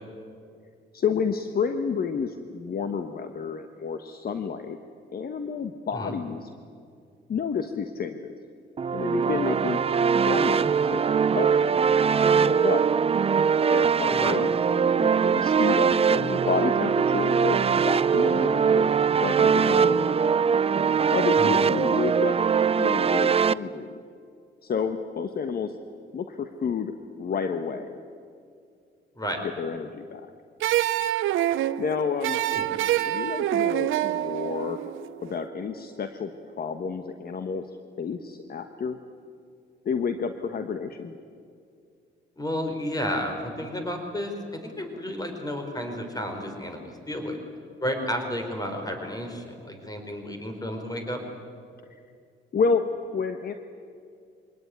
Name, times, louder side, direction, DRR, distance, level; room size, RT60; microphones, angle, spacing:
voice 1, 0.9-4.8 5.1-6.5 7.3-8.4 8.9-9.8 10.3-11.9 12.4-12.8 13.7-18.9 19.2-20.2 21.1-22.4 22.8-24.0 24.6-25.8 26.1-28.0 29.6-30.3 31.8-32.4 33.1-34.8 35.2-37.7 38.0-39.0 39.8-41.2 51.9-52.0 52.5-53.5, left 6 dB, 50° left, 8 dB, 1.2 m, -30 dB
sound 1, 8.8-23.5, right 6 dB, 30° right, 0.5 m, -22 dB
sound 2, 30.6-35.7, right 13 dB, 80° right, 0.7 m, -26 dB
voice 2, 42.4-47.4 47.8-51.2, equal, 20° left, 4 dB, 4.5 m, -32 dB
24.0 x 18.5 x 9.6 m, 2.3 s
cardioid pair, 90°, 20 cm